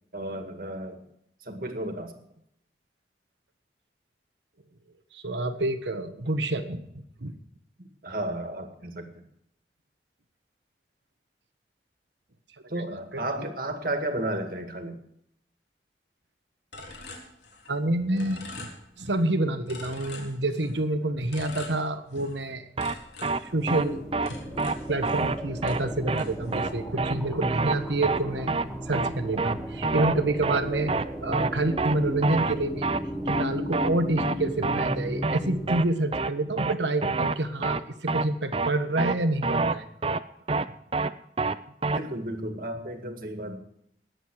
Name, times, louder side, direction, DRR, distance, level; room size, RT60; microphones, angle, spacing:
voice 1, 0.1-1.0 1.4-2.1 7.8-9.3 12.7-15.0 41.8-43.6, right 1 dB, 50° right, 5 dB, 2.0 m, -33 dB
voice 2, 5.1-6.8 7.2-7.3 12.8-13.5 16.8-16.9 17.7-18.7 19.0-22.7 23.4-24.0 24.3-24.4 24.9-30.9 31.2-32.9 33.2-39.8, right 2 dB, 85° right, 8 dB, 1.4 m, -28 dB
sound 1, 16.7-17.9 18.2-19.3 19.7-20.8 21.3-22.4 22.8-25.4 25.6-26.8, left 3 dB, 75° left, 3.8 m, -44 dB
sound 2, 22.8-22.9 23.2-23.4 23.7-23.8 24.1-24.3 24.6-24.7 25.0-25.4 25.6-25.8 26.1-26.2 26.5-26.7 27.0-27.1 27.4-27.7 28.0-28.2 28.5-28.7 28.9-29.1 29.4-29.6 29.8-30.1 30.4-30.6 30.9-31.1 31.3-31.5 31.8-32.0 32.2-32.6 32.8-33.0 33.3-33.4 33.7-33.9 34.2-34.3 34.6-35.0 35.2-35.4 35.7-35.8 36.1-36.3 36.6-36.7 37.0-37.4 37.6-37.8 38.1-38.2 38.5-38.7 39.0-39.1 39.4-39.7 40.0-40.2 40.5-40.7 40.9-41.1 41.4-41.6 41.8-42.0, right 3 dB, 30° right, 0.5 m, -26 dB
sound 3, 23.4-35.7, equal, 5° left, 1.4 m, -35 dB
20.0 x 8.0 x 4.8 m, 0.75 s
head